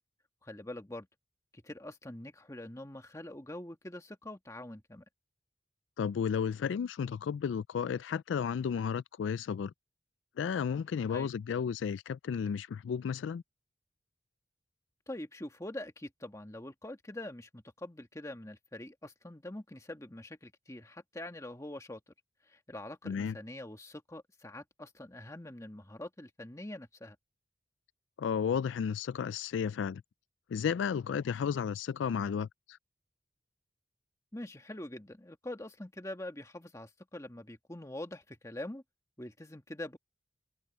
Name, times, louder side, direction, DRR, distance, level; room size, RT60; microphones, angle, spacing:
voice 1, 0.4-1.1 1.6-5.0 11.1-11.3 15.1-22.0 22.5-27.2 34.3-38.8 39.2-40.0, left 1 dB, 15° left, 1.7 m, -44 dB
voice 2, 6.0-9.7 10.4-13.4 23.0-23.3 28.2-30.0 30.5-32.8, left 7 dB, 85° left, 0.3 m, -33 dB
head